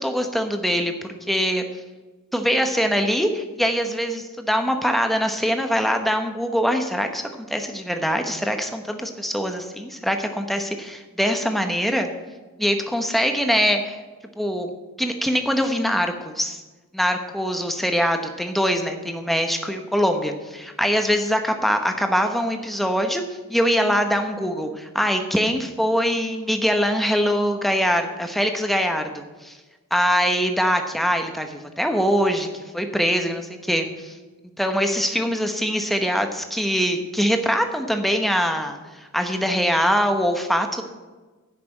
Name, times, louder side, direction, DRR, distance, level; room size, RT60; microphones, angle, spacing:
voice 1, 0.0-1.6 2.3-12.1 12.6-14.0 14.4-14.7 15.0-16.6 16.9-23.2 23.5-29.6 29.9-34.1 34.6-40.8, equal, ahead, 5 dB, 0.9 m, -23 dB
10.5 x 6.0 x 8.7 m, 1.3 s
head